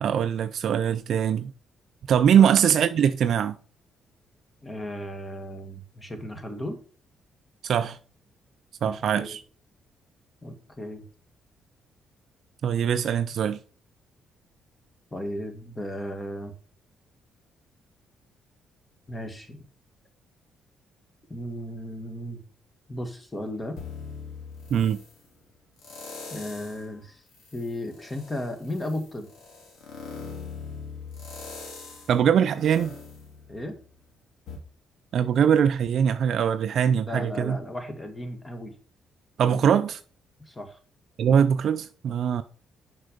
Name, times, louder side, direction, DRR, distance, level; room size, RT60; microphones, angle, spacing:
voice 1, 0.0-1.5 2.1-3.6 7.6-8.0 8.8-9.4 12.6-13.6 24.7-25.0 32.1-32.9 35.1-37.6 39.4-40.0 41.2-42.4, right 8 dB, 65° right, 0.4 m, -22 dB
voice 2, 4.6-6.8 8.8-9.4 10.4-11.0 15.1-16.5 19.1-19.6 21.3-22.4 22.9-23.8 26.3-27.2 27.5-29.3 33.5-33.8 37.1-38.7 40.4-40.8, left 1 dB, 20° left, 1.7 m, -35 dB
sound 1, 23.8-25.2 25.8-26.9 27.3-34.0 34.5-34.6, left 5 dB, 75° left, 2.5 m, -41 dB
6.4 x 5.4 x 5.0 m
cardioid pair, 90°, 0 cm